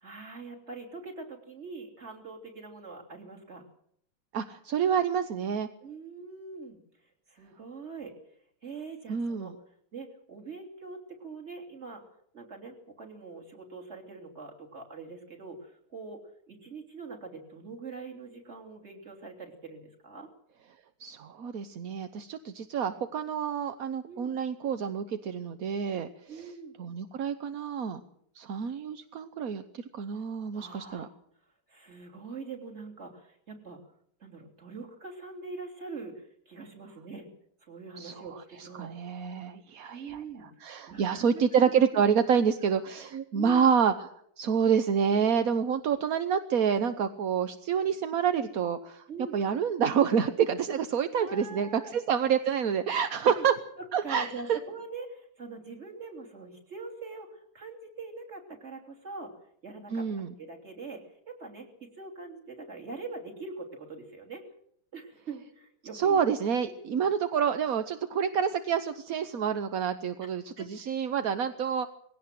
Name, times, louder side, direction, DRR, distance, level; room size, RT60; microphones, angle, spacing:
voice 1, 0.0-3.7 5.8-6.8 7.3-8.1 8.6-9.5 9.9-12.0 12.3-20.3 24.1-24.4 26.3-26.7 30.5-31.1 31.7-33.8 34.2-37.3 37.6-38.9 39.9-40.5 40.9-41.4 41.9-42.0 43.3-43.7 49.1-49.4 51.2-51.9 53.2-53.5 54.0-59.3 59.6-60.1 60.4-64.4 64.9-66.2 66.7-67.0 70.2-70.3 70.6-71.1, right 4 dB, 30° right, 2 dB, 3.5 m, -43 dB
voice 2, 4.3-5.7 9.1-9.5 21.0-26.5 26.8-28.0 28.3-31.1 38.0-40.2 40.6-44.1 44.4-49.0 49.3-53.5 53.9-54.6 59.9-60.3 65.9-71.9, right 7 dB, 55° right, 9 dB, 1.2 m, -28 dB
20.5 x 17.0 x 7.6 m, 0.69 s
omnidirectional pair, 2.2 m